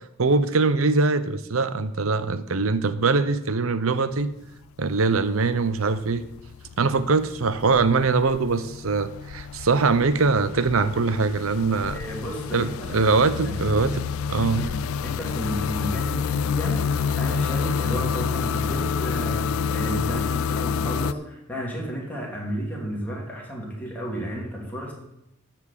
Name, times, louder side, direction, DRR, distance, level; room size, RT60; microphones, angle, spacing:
voice 1, 0.2-4.3 4.8-6.3 6.8-12.0 12.5-14.7, right 4 dB, 75° right, 13 dB, 0.8 m, -22 dB
sound 1, 4.1-4.6 4.9-21.1, left 6 dB, 80° left, 0.4 m, -29 dB
voice 2, 11.9-13.6 14.6-24.9, equal, 10° left, -3 dB, 2.8 m, -33 dB
13.0 x 4.4 x 8.3 m, 0.84 s
head